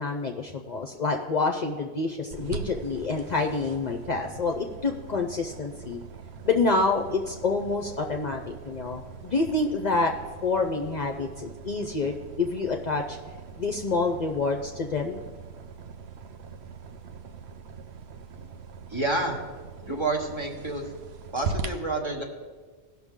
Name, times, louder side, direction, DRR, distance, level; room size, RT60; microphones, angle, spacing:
voice 1, 0.0-6.0 6.4-10.1 10.4-13.2 13.6-15.2, left 3 dB, 50° left, 2 dB, 0.6 m, -27 dB
sound 1, 2.3-21.7, right 5 dB, 75° right, 0.9 m, -41 dB
voice 2, 18.9-19.4 19.8-20.8 21.3-22.2, right 2 dB, 25° right, 1 dB, 1.1 m, -29 dB
16.5 x 6.1 x 3.6 m, 1.4 s
omnidirectional pair, 1.1 m